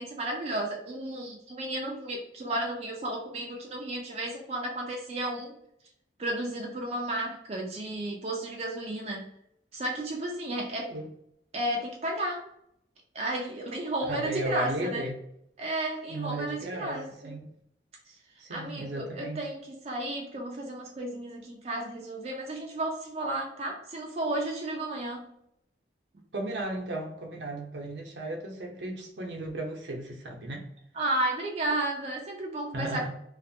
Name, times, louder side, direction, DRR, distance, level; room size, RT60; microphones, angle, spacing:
voice 1, 0.0-5.5 6.2-9.3 9.7-10.9 11.5-12.4 13.1-15.1 15.6-17.3 18.5-25.2 31.0-33.0, right 1 dB, 35° right, 0 dB, 0.4 m, -33 dB
voice 2, 14.0-15.2 16.1-17.5 18.4-19.5 26.3-30.6 32.7-33.1, right 1 dB, 80° right, 1 dB, 0.7 m, -35 dB
2.6 x 2.4 x 2.6 m, 0.74 s
head